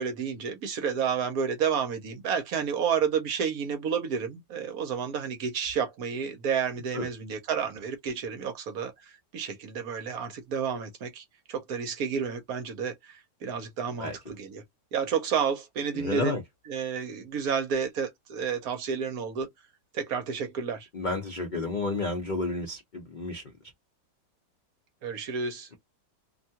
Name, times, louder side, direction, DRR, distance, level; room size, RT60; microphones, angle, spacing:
voice 1, 0.0-14.6 14.9-16.4 16.7-19.5 19.9-20.9 25.0-25.7, right 7 dB, 65° right, 1.0 m, -30 dB
voice 2, 15.9-16.4 20.9-23.7, left 3 dB, 70° left, 0.4 m, -31 dB
2.8 x 2.3 x 2.7 m
omnidirectional pair, 1.9 m